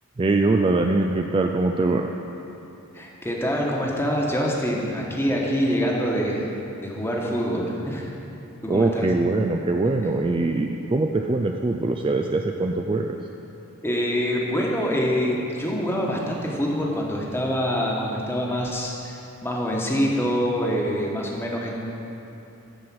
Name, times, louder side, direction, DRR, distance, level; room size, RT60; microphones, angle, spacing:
voice 1, 0.2-2.1 8.7-13.2, right 2 dB, 25° right, 3 dB, 0.3 m, -22 dB
voice 2, 2.9-6.5 6.8-8.1 8.6-9.1 13.8-21.7, equal, 10° left, -2 dB, 1.2 m, -25 dB
13.0 x 4.8 x 7.6 m, 2.9 s
head